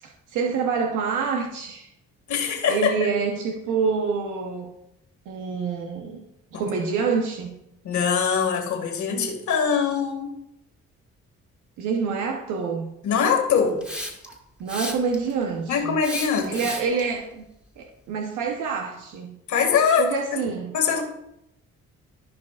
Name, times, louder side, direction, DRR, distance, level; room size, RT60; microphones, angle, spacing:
voice 1, 0.0-1.9 2.3-4.7 5.3-6.2 6.5-7.5 11.8-12.9 14.6-16.0 16.5-17.5 17.8-19.4 20.0-20.7, right 5 dB, 90° right, 2 dB, 0.9 m, -27 dB
voice 2, 2.3-2.9 6.5-6.6 7.8-10.3 13.0-13.8 15.7-16.7 19.5-20.1 20.7-21.0, left 6 dB, 75° left, 2 dB, 2.0 m, -22 dB
Hiss, 13.8-14.3 14.7-15.3 16.0-17.0, equal, 5° right, 1.8 m, -33 dB
15.0 x 5.1 x 2.4 m, 0.83 s
cardioid pair, 90°, 30 cm